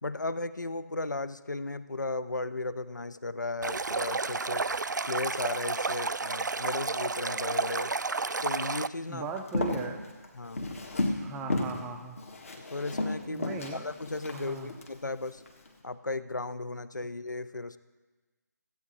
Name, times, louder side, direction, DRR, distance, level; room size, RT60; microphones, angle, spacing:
voice 1, 0.0-4.7 5.1-7.9 8.4-9.3 10.3-10.7 12.5-15.4 15.8-17.8, left 2 dB, 85° left, 14 dB, 0.6 m, -35 dB
Stream, 3.6-8.9, right 4 dB, 80° right, 0.4 m, -31 dB
voice 2, 9.1-10.0 11.2-12.2 13.3-13.8 14.3-14.7, right 4 dB, 5° right, 4 dB, 0.4 m, -38 dB
Walk footsteps, 9.4-11.2 11.5-11.8 12.2-14.9 15.4-15.7, left 2 dB, 50° left, 1.7 m, -32 dB
15.0 x 8.7 x 4.1 m, 1.3 s
figure-of-eight pair, 155°, 10 cm